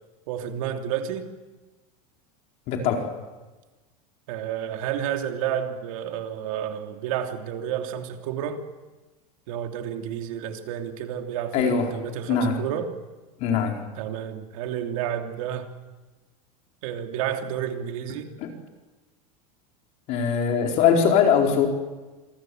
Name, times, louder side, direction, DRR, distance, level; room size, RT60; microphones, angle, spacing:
voice 1, 0.3-1.3 4.3-8.6 9.5-12.9 14.0-15.7 16.8-18.3, right 9 dB, 65° right, 5 dB, 3.0 m, -30 dB
voice 2, 2.7-3.1 11.5-11.9 12.3-12.6 13.4-13.8 18.4-18.5 20.1-21.7, left 7 dB, 40° left, 2 dB, 4.3 m, -21 dB
27.0 x 22.5 x 7.9 m, 1.2 s
supercardioid pair, 170°, 19 cm